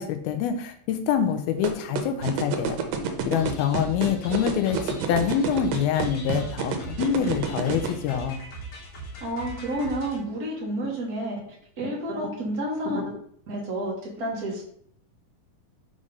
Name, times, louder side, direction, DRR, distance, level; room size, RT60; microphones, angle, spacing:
voice 1, 0.0-2.8 3.3-4.8 5.1-8.4, left 8 dB, 85° left, 7 dB, 2.5 m, -25 dB
sound 1, 1.6-7.9, right 8 dB, 75° right, 2.4 m, -27 dB
sound 2, 3.4-10.2, right 2 dB, 55° left, 1.6 m, -40 dB
voice 2, 9.2-11.4 11.8-13.0 13.5-14.6, right 1 dB, 55° right, -2 dB, 1.0 m, -30 dB
6.5 x 3.7 x 5.3 m, 0.63 s
omnidirectional pair, 4.4 m